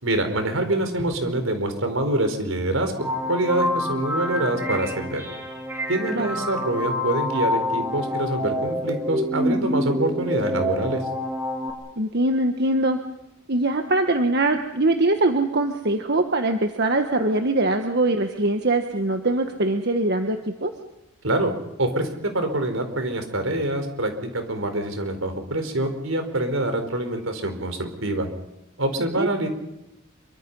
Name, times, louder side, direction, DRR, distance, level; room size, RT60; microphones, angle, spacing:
voice 1, 0.0-5.3 5.9-11.0 21.2-21.5 21.8-28.3 28.8-29.5, right 1 dB, 80° right, 7 dB, 4.4 m, -25 dB
sound 1, 3.0-11.7, left 1 dB, 10° right, 4.1 m, -27 dB
voice 2, 12.0-13.0 13.5-20.7 29.2-29.3, right 2 dB, 55° right, 5 dB, 1.5 m, -22 dB
27.0 x 24.5 x 5.6 m, 0.90 s
head